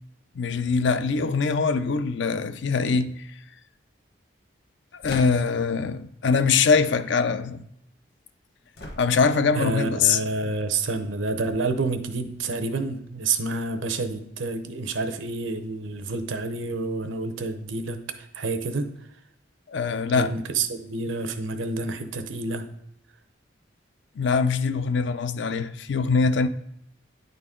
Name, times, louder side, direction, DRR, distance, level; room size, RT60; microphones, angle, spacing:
voice 1, 0.4-3.3 4.9-7.6 9.0-10.2 19.7-20.3 24.2-26.5, left 5 dB, 75° left, 0.5 m, -23 dB
sound 1, 5.0-5.7 8.8-9.5, left 1 dB, 55° left, 1.2 m, -39 dB
voice 2, 9.5-18.9 20.1-22.6, right 3 dB, 85° right, 0.7 m, -29 dB
9.6 x 4.0 x 3.7 m
head